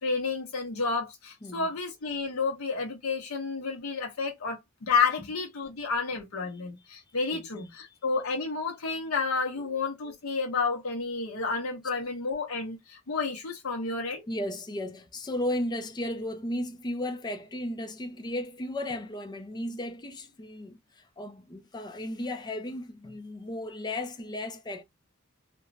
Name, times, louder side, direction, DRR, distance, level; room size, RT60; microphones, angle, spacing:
voice 1, 0.0-14.2, left 4 dB, 80° left, 0.7 m, -30 dB
voice 2, 7.3-7.7 9.6-9.7 14.3-24.8, left 1 dB, 20° left, 0.5 m, -35 dB
3.0 x 2.2 x 2.5 m
head